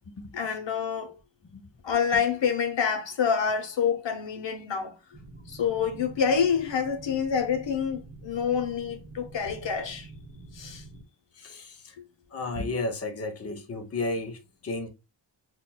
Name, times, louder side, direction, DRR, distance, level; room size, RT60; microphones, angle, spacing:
voice 1, 0.3-1.1 1.8-5.0 5.5-10.1 10.5-10.8, left 7 dB, 70° left, 0.8 m, -27 dB
sound 1, 5.1-11.0, right 2 dB, 20° right, 1.0 m, -47 dB
voice 2, 11.3-12.0 12.3-14.9, left 2 dB, 30° left, 0.7 m, -33 dB
5.7 x 2.3 x 2.2 m
wide cardioid pair, 150°, 46 cm